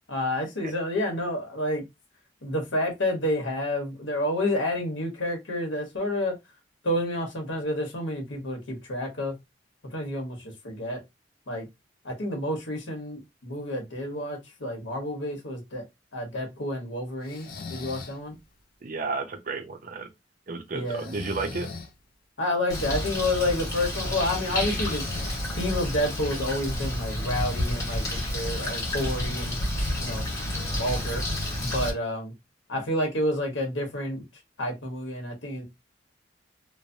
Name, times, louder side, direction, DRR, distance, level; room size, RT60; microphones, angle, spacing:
voice 1, 0.1-1.8 2.4-6.4 6.8-9.3 9.8-11.0 11.5-11.7 12.0-15.8 16.1-18.3 20.7-21.1 22.4-25.0 25.5-29.6 30.0-30.3 30.7-31.2 31.6-32.3 32.7-34.2 34.6-35.6, left 1 dB, 85° left, 1.0 m, -29 dB
Breathing, 17.2-18.2 20.9-21.9 24.3-25.7, left 3 dB, 50° left, 0.6 m, -39 dB
voice 2, 18.8-20.1 20.5-21.7, right 3 dB, 45° right, 0.5 m, -32 dB
Bird, 22.7-31.9, left 1 dB, 20° left, 1.2 m, -30 dB
3.1 x 2.0 x 2.6 m
head